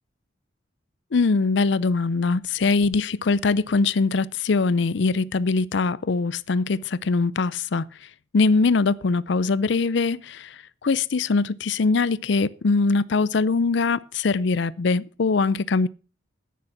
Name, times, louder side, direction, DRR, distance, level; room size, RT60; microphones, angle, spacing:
voice 1, 1.1-7.9 8.3-15.9, left 4 dB, 65° left, 0.5 m, -22 dB
10.5 x 9.3 x 5.9 m
head